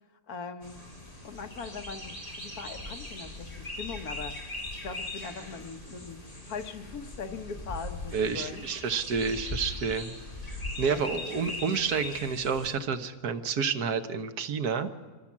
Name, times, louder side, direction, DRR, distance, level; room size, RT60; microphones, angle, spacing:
voice 1, 0.3-0.8 1.2-4.5 4.8-8.6 10.8-11.0, left 5 dB, 75° left, 7 dB, 1.6 m, -40 dB
sound 1, 0.6-12.7, left 2 dB, 25° left, 4.2 m, -40 dB
voice 2, 8.1-10.2 10.8-14.9, right 6 dB, 80° right, 9 dB, 1.6 m, -29 dB
25.0 x 15.5 x 7.4 m, 1.5 s
omnidirectional pair, 1.6 m